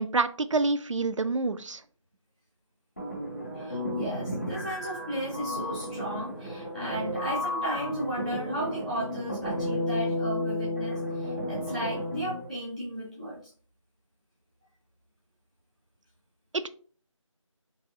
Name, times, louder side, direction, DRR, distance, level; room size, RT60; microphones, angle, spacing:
voice 1, 0.0-1.8 16.5-16.7, right 3 dB, 65° right, 11 dB, 0.4 m, -27 dB
sound 1, 3.0-12.5, left 1 dB, 30° left, 0.5 m, -33 dB
voice 2, 3.5-13.4, right 1 dB, 15° right, -10 dB, 0.8 m, -35 dB
3.0 x 2.7 x 3.7 m, 0.43 s
figure-of-eight pair, 175°, 17 cm